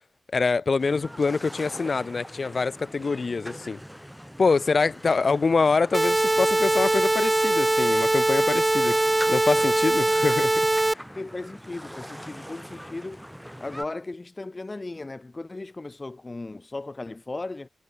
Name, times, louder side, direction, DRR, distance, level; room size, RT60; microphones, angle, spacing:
voice 1, 0.3-3.8 4.4-9.0 9.3-10.5 10.9-11.0, left 4 dB, 50° left, 0.5 m, -25 dB
sound 1, 0.8-13.8, equal, ahead, 2.5 m, -42 dB
sound 2, 5.9-10.9, right 2 dB, 20° right, 0.4 m, -22 dB
voice 2, 11.2-13.3 13.6-17.7, left 2 dB, 30° left, 3.9 m, -36 dB
cardioid pair, 70°, 0 cm